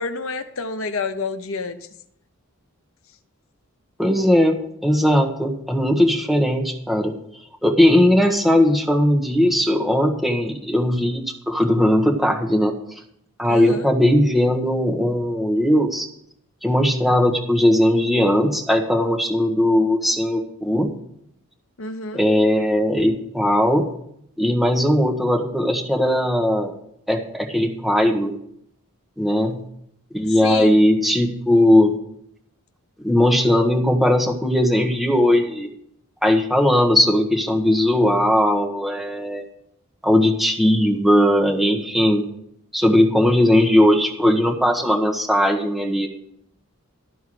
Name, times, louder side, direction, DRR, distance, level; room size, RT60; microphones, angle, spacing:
voice 1, 0.0-1.8 13.5-13.9 21.8-22.3 30.4-30.8, left 4 dB, 70° left, 9 dB, 0.8 m, -28 dB
voice 2, 4.0-7.2 7.6-12.7 13.4-16.1 16.6-20.9 22.1-23.9 24.4-26.7 27.1-28.3 29.2-29.6 30.1-32.0 33.0-35.7 36.2-39.4 40.0-42.2 42.7-46.1, left 1 dB, ahead, 1 dB, 1.2 m, -18 dB
13.0 x 4.6 x 7.7 m, 0.72 s
head